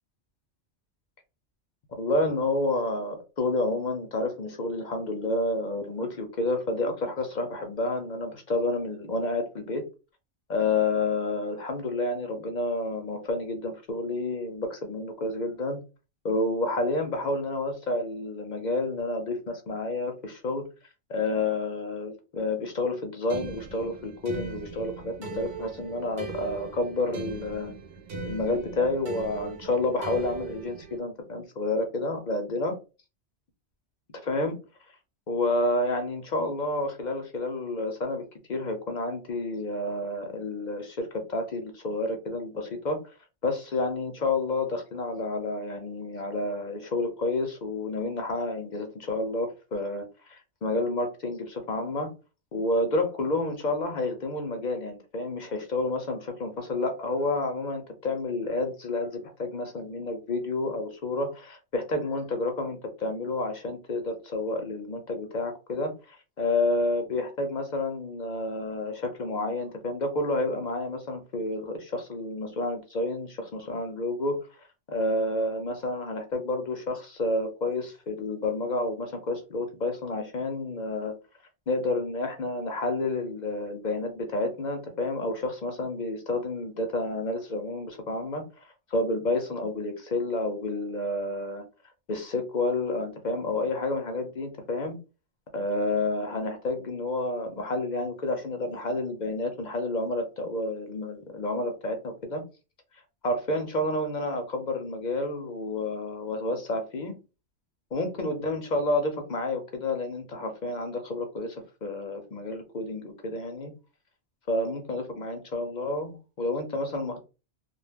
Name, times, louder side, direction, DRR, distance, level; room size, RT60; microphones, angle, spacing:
voice 1, 2.0-9.8 10.5-15.8 16.2-20.6 21.1-27.7 28.2-32.8 34.2-34.6 35.3-43.0 43.4-52.1 52.5-74.4 74.9-81.1 81.7-91.6 92.1-95.0 95.5-102.4 103.2-107.2 107.9-113.7 114.5-117.2, left 2 dB, 55° left, 5 dB, 0.6 m, -30 dB
sound 1, 23.3-31.0, right 5 dB, 55° right, 0.7 m, -39 dB
2.2 x 2.1 x 3.3 m, 0.31 s
omnidirectional pair, 1.1 m